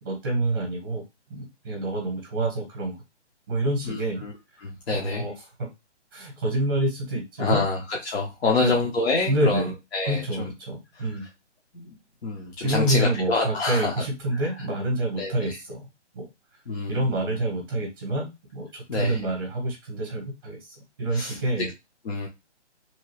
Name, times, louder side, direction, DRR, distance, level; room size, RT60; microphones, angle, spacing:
voice 1, 0.0-1.0 1.3-3.0 3.5-4.2 4.9-5.3 5.6-5.7 6.1-7.6 8.4-8.7 9.3-9.7 10.1-11.2 12.6-15.9 16.1-16.3 16.9-21.7, right 1 dB, 20° right, 1 dB, 0.9 m, -27 dB
voice 2, 3.8-4.3 4.6-5.3 7.4-10.5 10.9-11.1 11.7-12.0 12.2-14.0 14.3-14.4 15.2-15.6 16.7-17.4 18.9-19.2 21.1-21.7 22.0-22.3, left 3 dB, 60° left, -1 dB, 0.8 m, -27 dB
2.9 x 2.3 x 3.0 m, 0.23 s
hypercardioid pair, 165°, 36 cm